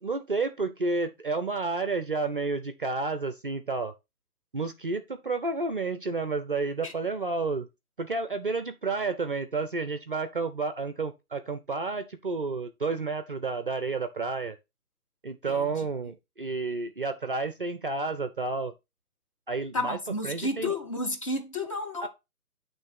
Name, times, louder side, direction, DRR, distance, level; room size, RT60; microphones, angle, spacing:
voice 1, 0.0-3.9 4.5-7.7 8.0-14.6 15.2-18.7 19.5-20.0 20.2-20.7 22.0-22.1, right 3 dB, 40° right, 0.5 m, -30 dB
voice 2, 15.4-15.9 19.7-22.1, left 2 dB, 20° left, 0.7 m, -32 dB
8.3 x 3.2 x 4.3 m
figure-of-eight pair, 140°, 44 cm